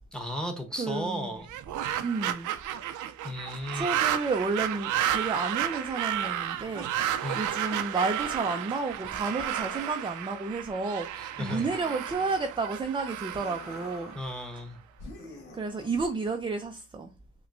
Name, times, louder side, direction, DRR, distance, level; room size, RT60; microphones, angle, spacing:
voice 1, 0.1-1.5 3.2-3.8 7.2-7.4 11.2-11.7 14.1-14.8, equal, 5° left, 1.0 m, -35 dB
voice 2, 0.8-1.4 2.0-2.5 3.7-14.2 15.5-17.1, right 4 dB, 15° right, 0.4 m, -31 dB
sound 1, 1.4-14.6, right 11 dB, 75° right, 0.5 m, -32 dB
sound 2, 5.5-6.5 7.2-8.0 9.1-10.1 11.4-12.5 13.3-14.3 15.0-16.0, left 2 dB, 70° left, 1.5 m, -46 dB
5.8 x 2.2 x 2.5 m
cardioid pair, 90°, 30 cm